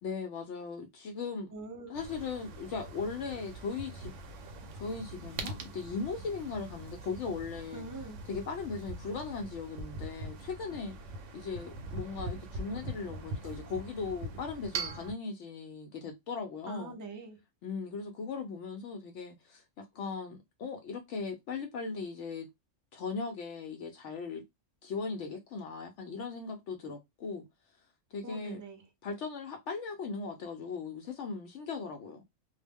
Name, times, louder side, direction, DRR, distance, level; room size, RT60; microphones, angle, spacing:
voice 1, 0.0-1.5 1.9-4.1 4.7-7.8 8.3-10.9 11.3-17.0 17.6-22.5 22.9-24.4 24.8-27.4 28.1-28.6 29.0-32.2, left 4 dB, 75° left, 0.9 m, -38 dB
voice 2, 1.5-1.9 7.7-8.2 16.7-17.4 28.2-28.8, right 2 dB, 30° right, 0.3 m, -43 dB
sound 1, 1.9-15.1, right 2 dB, 80° right, 0.9 m, -42 dB
2.3 x 2.0 x 3.4 m
omnidirectional pair, 1.3 m